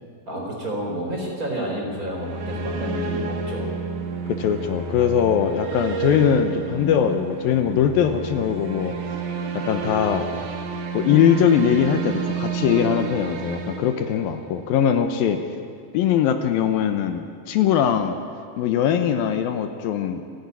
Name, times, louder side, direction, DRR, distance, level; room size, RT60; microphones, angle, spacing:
voice 1, 0.3-3.8, right 1 dB, 20° right, -1 dB, 4.4 m, -30 dB
sound 1, 1.8-14.7, right 5 dB, 60° right, 3.1 m, -30 dB
voice 2, 4.3-8.9 9.5-10.2 10.9-15.4 15.9-18.2 18.6-20.2, left 8 dB, 75° left, 7 dB, 2.6 m, -21 dB
28.5 x 12.0 x 9.6 m, 2.2 s
omnidirectional pair, 4.4 m